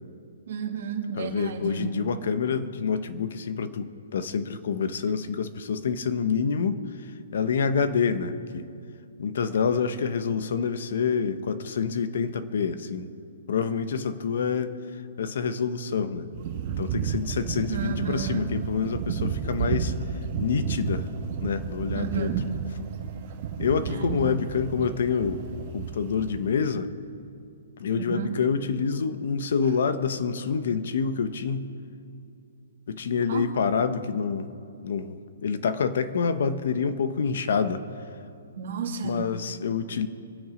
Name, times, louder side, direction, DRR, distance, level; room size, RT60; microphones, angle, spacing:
voice 1, 0.5-1.9 17.7-18.5 21.9-22.4 23.8-24.2 28.0-28.4 33.3-33.5 38.6-39.3, right 7 dB, 50° right, 2 dB, 2.1 m, -32 dB
voice 2, 1.2-6.8 7.3-8.7 9.2-13.1 13.5-14.7 15.2-16.3 16.8-19.9 20.4-21.1 21.4-22.3 23.6-25.4 25.7-26.9 27.8-31.7 32.9-34.5 34.8-37.8 39.0-40.1, left 6 dB, 50° left, 11 dB, 1.1 m, -27 dB
sound 1, 16.3-26.5, right 6 dB, 30° right, 1.5 m, -32 dB
26.0 x 9.4 x 5.2 m, 2.6 s
hypercardioid pair, 175°, 0 cm